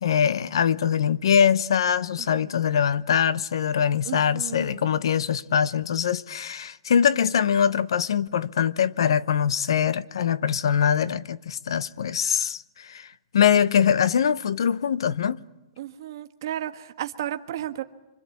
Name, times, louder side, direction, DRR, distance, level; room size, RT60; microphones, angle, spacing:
voice 1, 0.0-15.4, left 8 dB, 75° left, 0.9 m, -23 dB
voice 2, 2.2-2.6 4.0-5.0 15.8-17.8, right 12 dB, 50° right, 1.5 m, -34 dB
26.0 x 25.0 x 8.4 m
hypercardioid pair, 170°, 3 cm